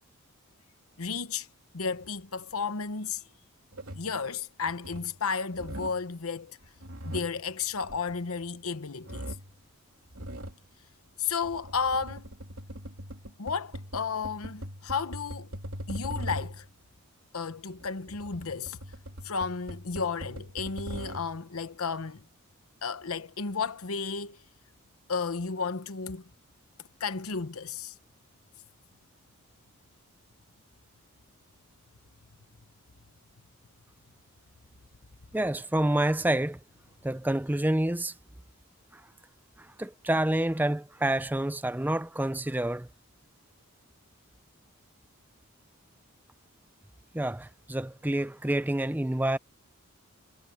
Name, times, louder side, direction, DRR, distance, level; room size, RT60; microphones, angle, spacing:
voice 1, 1.0-1.5 1.7-3.2 4.0-6.6 7.0-9.3 11.2-12.3 13.4-15.5 15.9-16.6 17.3-18.8 19.2-22.2 22.8-24.4 25.1-26.2 27.0-27.9, left 5 dB, 75° left, 1.0 m, -33 dB
sound 1, 3.7-4.2 4.6-5.2 5.5-6.1 6.6-8.7 9.0-9.6 10.1-10.6 11.3-16.7 17.7-21.4, equal, 65° right, 3.4 m, -41 dB
voice 2, 35.3-36.6 37.0-38.1 38.9-39.0 39.6-42.9 47.1-49.4, right 1 dB, 10° right, 0.5 m, -28 dB
head